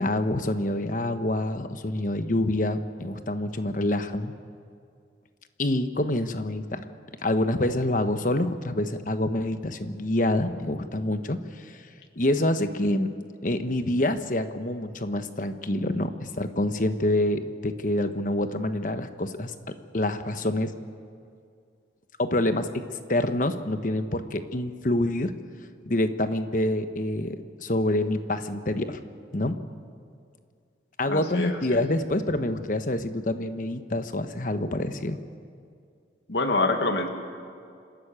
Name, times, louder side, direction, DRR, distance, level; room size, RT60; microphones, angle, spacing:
voice 1, 0.0-4.3 5.6-6.8 7.2-11.8 12.2-13.1 13.4-19.5 19.9-20.7 22.2-22.8 23.1-25.3 25.8-29.0 29.3-29.6 31.0-35.2, left 1 dB, 45° left, 9 dB, 1.1 m, -26 dB
voice 2, 31.1-31.8 36.3-37.1, left 2 dB, 70° left, 5 dB, 1.8 m, -26 dB
27.0 x 13.0 x 8.9 m, 2.3 s
head